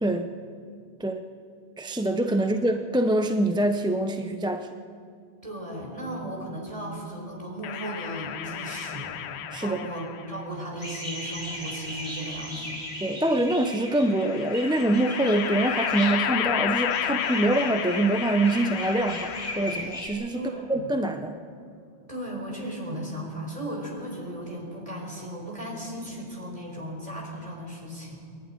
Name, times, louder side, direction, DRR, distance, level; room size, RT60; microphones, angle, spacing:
voice 1, 0.0-0.3 1.0-1.2 1.8-4.7 9.5-9.8 13.0-21.4, right 1 dB, 5° right, 6 dB, 0.5 m, -25 dB
voice 2, 5.4-9.3 9.6-12.8 20.3-20.9 22.1-28.3, right 1 dB, 30° right, -1 dB, 4.4 m, -36 dB
sound 1, 7.6-10.3 11.4-12.4 14.0-20.0, left 10 dB, 75° left, 0.9 m, -32 dB
sound 2, 10.8-16.2 16.8-20.1, equal, 45° left, 3.7 m, -37 dB
23.5 x 11.5 x 9.9 m, 2.4 s
omnidirectional pair, 1.2 m